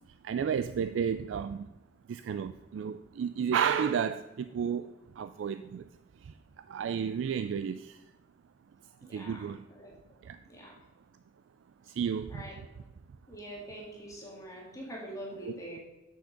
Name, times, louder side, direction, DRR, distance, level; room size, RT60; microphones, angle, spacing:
voice 1, 0.2-1.7 2.1-5.9 6.2-8.0 9.1-9.6 10.2-10.4 11.8-12.4 15.4-15.5, right 7 dB, 85° right, 11 dB, 0.3 m, -32 dB
voice 2, 9.0-9.9 10.5-10.8 12.3-12.6 13.3-15.8, equal, 20° left, -3 dB, 1.9 m, -44 dB
8.1 x 6.5 x 5.1 m, 1.0 s
head